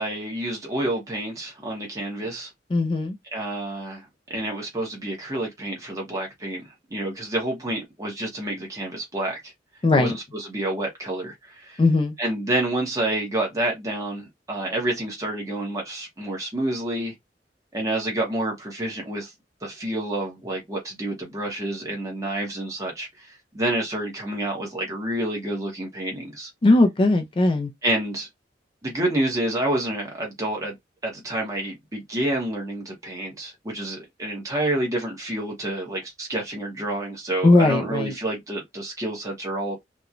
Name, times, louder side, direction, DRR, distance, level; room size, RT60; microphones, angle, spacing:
voice 1, 0.0-2.5 3.3-4.0 4.3-9.5 10.0-11.8 12.2-17.1 17.7-19.3 19.6-26.5 27.8-28.3 28.8-30.7 31.0-39.8, right 1 dB, 20° right, 0.8 m, -28 dB
voice 2, 2.7-3.2 9.8-10.2 11.8-12.2 26.6-27.7 37.4-38.1, left 2 dB, 30° left, 0.4 m, -19 dB
2.9 x 2.1 x 2.4 m
head